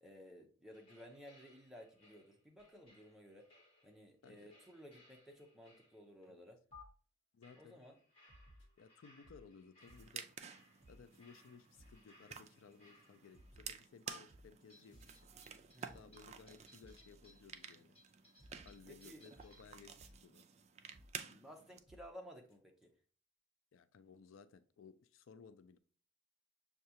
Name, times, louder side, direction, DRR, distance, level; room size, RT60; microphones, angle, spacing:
voice 1, 0.0-3.5 3.8-6.6 7.6-8.0 15.7-16.1 18.9-19.2 21.2-22.9, equal, ahead, 1 dB, 0.6 m, -56 dB
sound 1, 0.7-6.2 6.7-6.8 7.4-13.5 14.1-14.2 14.7-19.8, left 3 dB, 30° left, 1.6 m, -65 dB
voice 2, 4.2-4.6 6.3-6.4 7.3-7.8 8.8-10.3 10.9-15.2 15.9-17.9 18.7-20.4 23.7-25.8, left 5 dB, 85° left, 12 dB, 0.4 m, -59 dB
sound 2, 6.7-6.9 7.4-7.6 8.3-9.5 9.9-10.2 10.5-10.6 10.8-11.2 11.4-11.5 11.8-12.1 12.4-12.7 13.0-17.8 18.1-18.2 18.4-20.2 20.9-21.3 21.9-22.1 22.5-22.6 22.8-22.9, equal, 70° left, 1.1 m, -63 dB
sound 3, 9.8-21.8, right 7 dB, 35° right, 0.3 m, -53 dB
6.4 x 2.3 x 2.8 m, 0.42 s
head